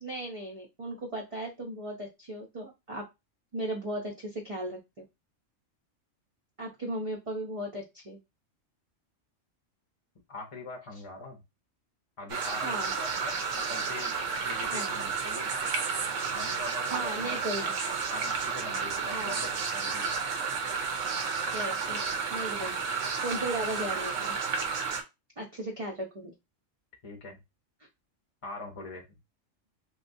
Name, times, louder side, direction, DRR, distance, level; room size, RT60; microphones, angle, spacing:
voice 1, 0.0-3.1 3.5-4.8 6.6-8.2 12.6-12.9 14.7-15.0 16.9-17.6 19.1-19.4 21.5-22.0 22.3-22.8 23.2-24.4 25.4-26.3, right 1 dB, 35° right, -1 dB, 0.6 m, -36 dB
voice 2, 10.3-11.4 12.2-13.3 13.7-14.1 14.5-15.5 16.3-17.8 18.1-20.1 27.0-27.4 28.4-29.2, left 2 dB, 30° left, 2 dB, 0.7 m, -42 dB
sound 1, 12.3-25.0, right 5 dB, 80° right, 1.1 m, -32 dB
3.1 x 3.0 x 2.6 m, 0.23 s
omnidirectional pair, 1.3 m